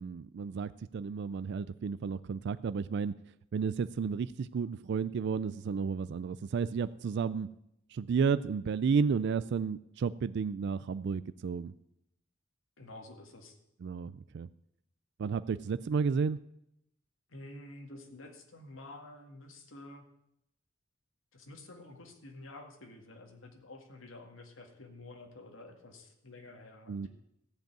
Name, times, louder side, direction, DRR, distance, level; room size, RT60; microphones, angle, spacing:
voice 1, 0.0-3.1 3.5-7.5 7.9-11.7 13.8-14.5 15.2-16.4 26.9-27.1, right 5 dB, 60° right, 15 dB, 0.3 m, -32 dB
voice 2, 12.8-13.6 17.3-20.0 21.3-27.1, left 2 dB, 80° left, 4 dB, 1.9 m, -50 dB
14.5 x 5.4 x 8.8 m, 0.80 s
head